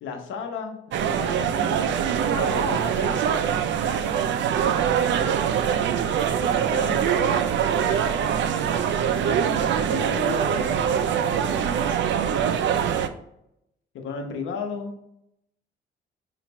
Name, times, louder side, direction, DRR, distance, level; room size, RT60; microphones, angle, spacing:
voice 1, 0.0-1.8 2.3-3.2 6.3-7.4 9.1-11.7 13.9-15.0, left 4 dB, 80° left, 4 dB, 0.9 m, -34 dB
sound 1, 0.9-13.1, right 8 dB, 65° right, 0.4 m, -23 dB
5.3 x 2.5 x 3.0 m, 0.79 s
cardioid pair, 90°, 20 cm